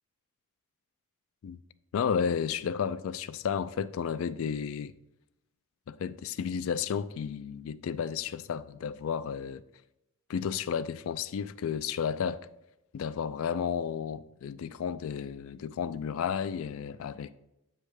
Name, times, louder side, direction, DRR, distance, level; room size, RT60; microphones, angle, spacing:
voice 1, 1.9-5.0 5.9-9.6 10.3-12.5 12.9-17.4, left 7 dB, 70° left, 0.3 m, -32 dB
7.4 x 3.3 x 4.7 m
head